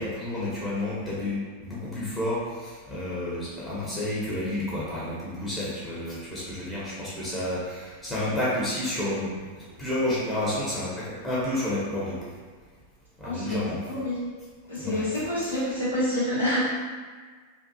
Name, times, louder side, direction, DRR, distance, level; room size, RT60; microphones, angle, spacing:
voice 1, 0.0-9.4 9.8-12.1 13.2-13.8 14.8-15.0, left 1 dB, 10° left, -8 dB, 0.7 m, -30 dB
voice 2, 13.2-14.2 14.7-16.7, left 1 dB, 75° left, -11 dB, 1.0 m, -27 dB
2.7 x 2.3 x 2.6 m, 1.5 s
figure-of-eight pair, 90°, 0 cm